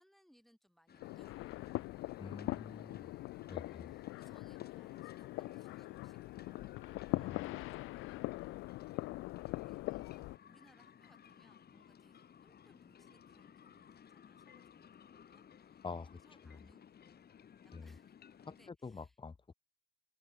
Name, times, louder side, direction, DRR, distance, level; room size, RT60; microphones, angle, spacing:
voice 1, 0.0-1.9 3.9-8.9 9.5-19.2, equal, ahead, 6.6 m, -70 dB
sound 1, 0.9-18.7, left 8 dB, 55° left, 2.4 m, -59 dB
sound 2, 1.0-10.4, left 19 dB, 90° left, 0.4 m, -42 dB
voice 2, 2.2-3.1 3.5-3.9 7.1-7.4 15.8-16.6 17.7-17.9 18.5-19.5, left 4 dB, 25° left, 1.2 m, -47 dB
cardioid pair, 90°, 20 cm